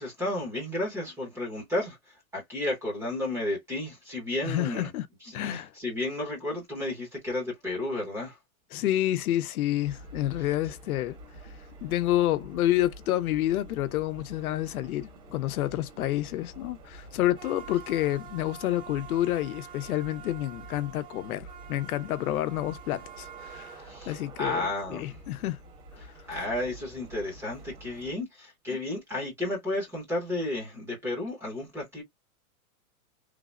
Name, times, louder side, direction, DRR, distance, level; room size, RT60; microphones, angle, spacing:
voice 1, 0.0-4.9 5.4-8.4 23.8-25.2 26.0-32.0, left 1 dB, 5° right, 0.6 m, -32 dB
voice 2, 4.4-5.1 5.3-5.7 8.7-25.6 25.9-26.3, left 14 dB, 80° left, 0.7 m, -29 dB
sound 1, 9.8-28.1, right 4 dB, 55° right, 1.3 m, -47 dB
3.3 x 2.0 x 2.4 m
supercardioid pair, 170°, 43 cm